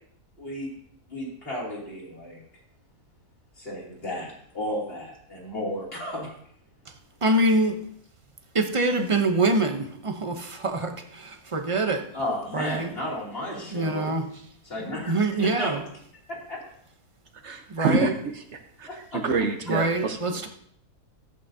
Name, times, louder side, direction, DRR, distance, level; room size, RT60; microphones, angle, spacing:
voice 1, 0.4-0.7 1.1-2.4 3.6-6.4 12.1-14.1 14.6-15.9 16.3-16.6 17.9-18.0 18.9-19.2, left 1 dB, 40° left, -4 dB, 3.1 m, -33 dB
voice 2, 7.2-7.8 8.5-12.1 12.5-12.9 13.7-14.3 15.1-15.8 17.7-18.1 19.7-20.5, right 2 dB, 30° right, 5 dB, 0.6 m, -25 dB
voice 3, 17.4-18.9 19.2-20.4, right 3 dB, 55° right, 6 dB, 1.1 m, -27 dB
13.5 x 8.5 x 2.7 m, 0.65 s
omnidirectional pair, 1.6 m